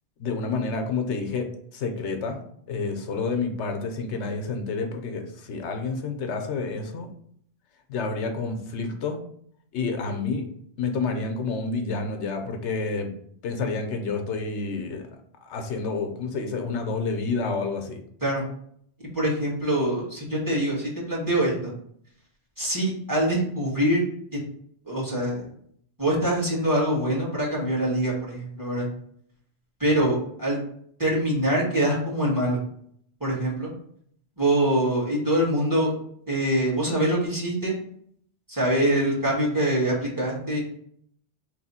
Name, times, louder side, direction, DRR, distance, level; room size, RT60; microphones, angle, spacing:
voice 1, 0.2-1.5 1.7-2.4 2.7-7.1 7.9-9.2 9.7-10.5 10.8-13.1 13.4-15.0 15.4-18.0, left 4 dB, 85° left, 5 dB, 1.0 m, -29 dB
voice 2, 19.1-21.7 22.6-24.0 24.3-24.4 24.8-25.5 26.0-28.9 29.8-30.6 31.0-32.6 33.2-33.7 34.4-35.9 36.3-37.7 38.5-40.6, right 1 dB, 15° right, -5 dB, 1.6 m, -24 dB
3.2 x 3.0 x 4.2 m, 0.65 s
omnidirectional pair, 1.2 m